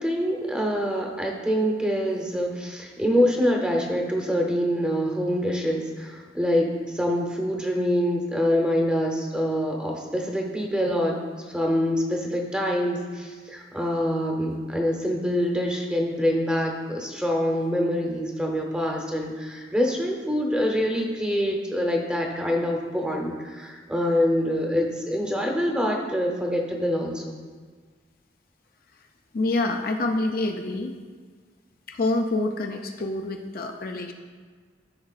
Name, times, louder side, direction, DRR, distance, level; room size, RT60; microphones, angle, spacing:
voice 1, 0.0-11.2 11.5-27.4, equal, 5° right, 0 dB, 0.8 m, -25 dB
voice 2, 29.3-31.0 31.9-34.1, left 2 dB, 50° left, 4 dB, 0.4 m, -27 dB
13.0 x 4.6 x 2.4 m, 1.6 s
head